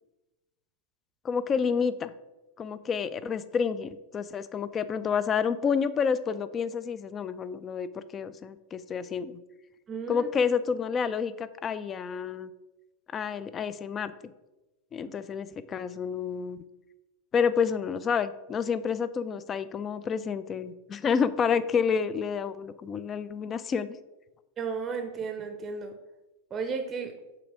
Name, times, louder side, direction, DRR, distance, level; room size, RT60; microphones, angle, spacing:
voice 1, 1.2-2.1 2.6-9.4 10.1-12.5 13.1-14.3 14.9-16.6 17.3-23.9, left 6 dB, 25° left, 15 dB, 0.3 m, -29 dB
voice 2, 9.9-10.3 15.0-15.1 24.6-25.9 26.5-27.2, right 5 dB, 25° right, 6 dB, 0.6 m, -34 dB
5.9 x 3.9 x 4.8 m, 1.0 s
figure-of-eight pair, 90°, 0 cm